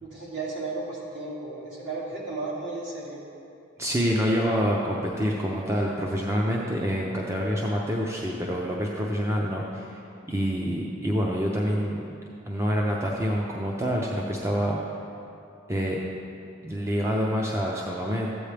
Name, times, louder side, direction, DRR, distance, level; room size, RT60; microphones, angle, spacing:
voice 1, 0.0-3.2, right 3 dB, 55° right, -6 dB, 2.5 m, -34 dB
voice 2, 3.8-12.0 12.5-14.8 15.7-16.0 16.6-18.3, equal, 15° right, -2 dB, 0.6 m, -27 dB
13.5 x 8.7 x 3.4 m, 2.6 s
head